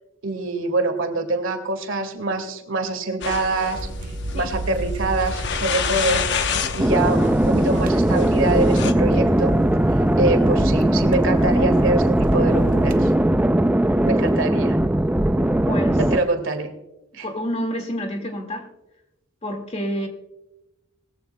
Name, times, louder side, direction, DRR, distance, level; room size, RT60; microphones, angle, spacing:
voice 1, 0.2-3.9 4.3-6.2 6.7-9.6 10.2-13.1 14.1-14.8 16.0-16.7 17.1-17.3, right 2 dB, 75° right, 6 dB, 2.0 m, -24 dB
sound 1, 3.2-8.9, left 6 dB, 60° left, 0.9 m, -29 dB
sound 2, 3.7-13.2, right 2 dB, 40° right, 0.6 m, -32 dB
sound 3, 6.8-16.2, right 1 dB, 5° right, 0.3 m, -19 dB
voice 2, 15.7-16.0 17.2-18.7 19.4-20.1, equal, 30° left, 4 dB, 1.9 m, -28 dB
20.5 x 15.0 x 2.2 m, 0.96 s
head